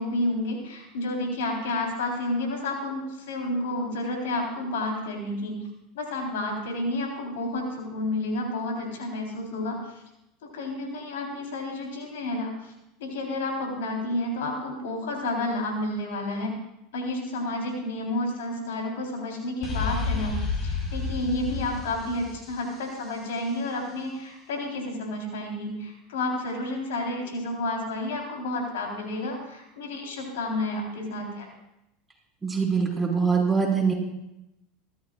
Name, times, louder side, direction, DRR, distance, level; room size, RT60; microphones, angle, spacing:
voice 1, 0.0-5.6 5.9-9.8 10.5-12.7 13.0-16.6 16.9-31.5, left 2 dB, 85° left, 0 dB, 3.9 m, -30 dB
sound 1, 19.6-23.4, left 4 dB, 35° left, 4.6 m, -31 dB
voice 2, 32.4-33.9, right 5 dB, 10° right, -2 dB, 5.2 m, -23 dB
22.0 x 13.5 x 2.5 m, 0.88 s
hypercardioid pair, 100°, 0 cm